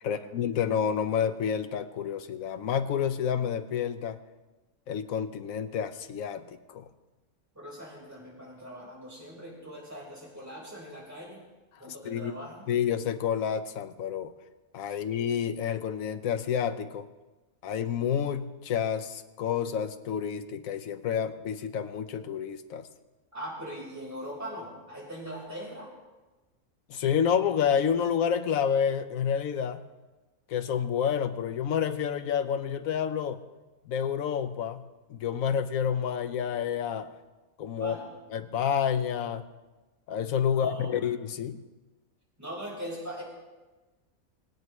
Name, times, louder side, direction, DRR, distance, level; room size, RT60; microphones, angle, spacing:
voice 1, 0.0-4.2 4.9-6.9 11.9-12.3 12.7-14.3 14.7-17.1 17.6-22.9 26.9-29.8 30.5-33.4 33.9-37.1 37.6-38.0 38.3-39.5 40.1-41.6, left 8 dB, 75° left, 10 dB, 1.1 m, -29 dB
voice 2, 7.5-11.4 11.8-12.7 14.9-15.0 23.3-25.9 37.8-38.1 40.5-41.1 42.4-43.2, equal, 10° right, -5 dB, 4.5 m, -41 dB
21.5 x 8.8 x 3.1 m, 1.2 s
omnidirectional pair, 1.5 m